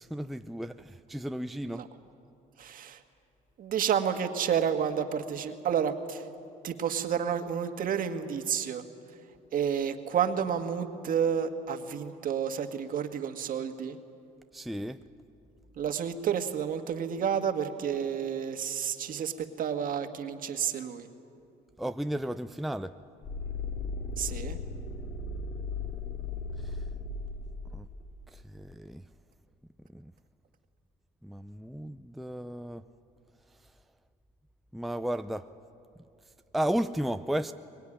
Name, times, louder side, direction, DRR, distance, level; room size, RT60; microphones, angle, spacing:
voice 1, 0.0-1.9 14.5-15.0 21.8-23.0 26.6-26.8 27.7-27.9 28.3-29.0 29.9-30.1 31.2-32.9 34.7-35.5 36.5-37.5, right 1 dB, ahead, 8 dB, 0.5 m, -34 dB
voice 2, 2.6-3.0 3.6-6.3 6.6-8.8 9.5-14.0 15.8-21.1 24.2-24.6, right 8 dB, 55° right, 7 dB, 1.7 m, -30 dB
sound 1, 23.2-28.1, left 3 dB, 55° left, 2.8 m, -36 dB
23.5 x 20.5 x 10.0 m, 2.5 s
cardioid pair, 110°, 17 cm